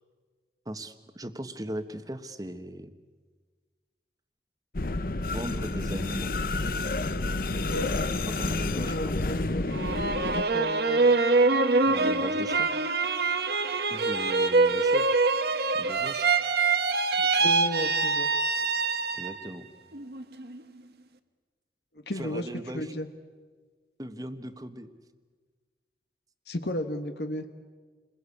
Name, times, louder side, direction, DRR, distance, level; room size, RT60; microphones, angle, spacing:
voice 1, 0.6-2.9 5.3-6.3 8.3-9.2 11.9-12.7 13.9-15.1 15.7-16.3 19.1-19.7 22.1-22.9 24.0-24.9, right 1 dB, 20° right, 9 dB, 1.3 m, -38 dB
sound 1, 4.7-10.4, left 2 dB, 55° left, 0.8 m, -29 dB
voice 2, 8.9-9.7 10.3-11.0 17.2-18.3 21.9-22.5 22.7-23.1 26.5-27.5, left 1 dB, 70° left, 7 dB, 1.4 m, -33 dB
sound 2, 9.7-19.5 19.9-20.6, right 3 dB, 65° right, 1.3 m, -25 dB
29.0 x 21.5 x 8.5 m, 1.5 s
head